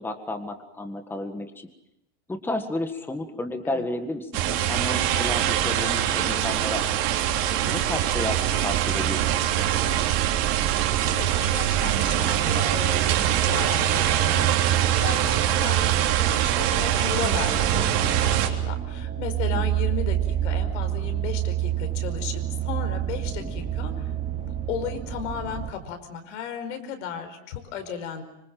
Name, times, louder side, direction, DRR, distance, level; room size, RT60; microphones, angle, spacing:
voice 1, 0.0-1.7 2.3-6.8 7.7-9.3 9.6-10.0 19.5-19.7 23.4-23.5, left 2 dB, 5° left, 6 dB, 1.7 m, -32 dB
sound 1, 4.3-18.5, right 11 dB, 55° right, 3.5 m, -23 dB
voice 2, 11.0-20.2 20.4-24.1 24.4-28.2, left 7 dB, 85° left, 7 dB, 5.1 m, -35 dB
sound 2, 17.6-25.7, right 11 dB, 20° right, 3.0 m, -28 dB
26.0 x 25.5 x 7.7 m, 0.83 s
supercardioid pair, 160°, 35 cm